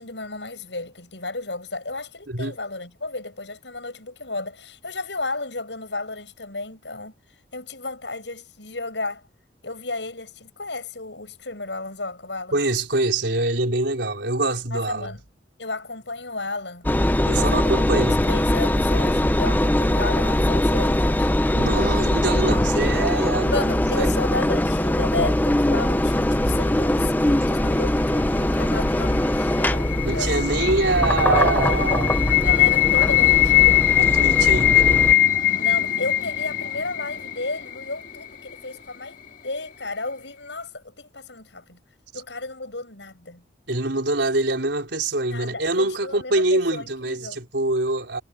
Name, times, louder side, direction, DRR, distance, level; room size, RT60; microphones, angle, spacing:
voice 1, 0.0-7.1 7.5-9.3 9.6-12.6 14.7-15.2 15.6-16.9 17.3-17.9 18.2-21.3 23.5-30.3 30.7-30.8 31.1-33.8 35.6-39.2 39.4-41.8 42.1-43.4 45.3-47.4, left 3 dB, 80° left, 7.9 m, -33 dB
voice 2, 12.5-15.1 17.2-18.2 21.5-23.5 24.0-24.1 30.0-32.3 34.0-35.1 43.7-48.2, right 2 dB, 80° right, 4.1 m, -24 dB
Engine, 16.8-35.1, left 1 dB, 10° left, 0.6 m, -21 dB
sound 1, 29.2-38.2, left 14 dB, 45° left, 2.3 m, -21 dB
head